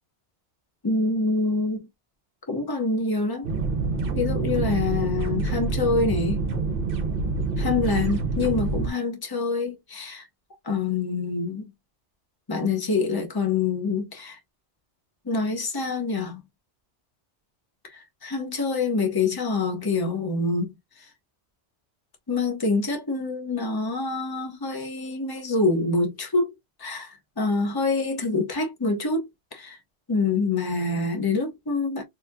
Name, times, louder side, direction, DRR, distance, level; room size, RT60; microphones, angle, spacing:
voice 1, 0.8-1.9 2.5-3.5 4.1-6.4 7.6-10.3 10.6-11.7 12.5-14.4 15.3-16.4 17.9-20.7 22.3-26.5 26.8-29.2 29.5-29.8 30.1-32.0, left 3 dB, 20° left, 1.0 m, -26 dB
sound 1, 3.4-8.9, right 4 dB, 55° right, 1.0 m, -26 dB
4.1 x 2.9 x 2.2 m
omnidirectional pair, 1.2 m